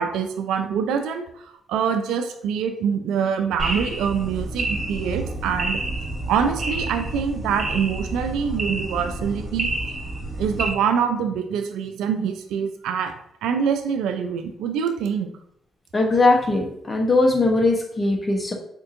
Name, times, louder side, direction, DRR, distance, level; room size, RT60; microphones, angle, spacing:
voice 1, 0.0-5.8 6.3-9.7 10.4-13.1 13.4-15.3, right 7 dB, 80° right, 7 dB, 0.4 m, -25 dB
sound 1, 3.6-10.7, right 2 dB, 40° right, 1.2 m, -29 dB
voice 2, 15.9-18.5, left 2 dB, 35° left, 1 dB, 0.8 m, -20 dB
4.4 x 2.6 x 2.5 m, 0.74 s
supercardioid pair, 55°, 0 cm